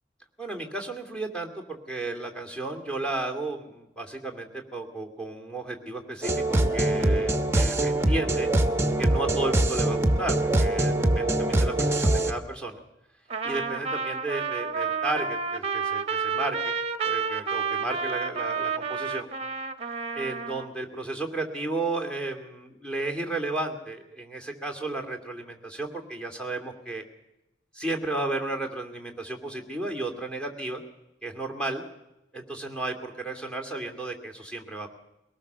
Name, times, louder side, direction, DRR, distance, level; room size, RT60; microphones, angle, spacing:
voice 1, 0.4-8.5 9.0-12.8 13.4-16.8 17.0-19.3 20.1-27.0 27.7-30.8 31.2-31.8 32.3-34.9, right 2 dB, 5° left, 2 dB, 2.5 m, -33 dB
sound 1, 6.2-12.3, right 1 dB, 15° right, 1.2 m, -23 dB
Trumpet, 13.3-20.7, right 5 dB, 30° right, 1.1 m, -30 dB
22.5 x 18.0 x 6.8 m, 0.92 s
head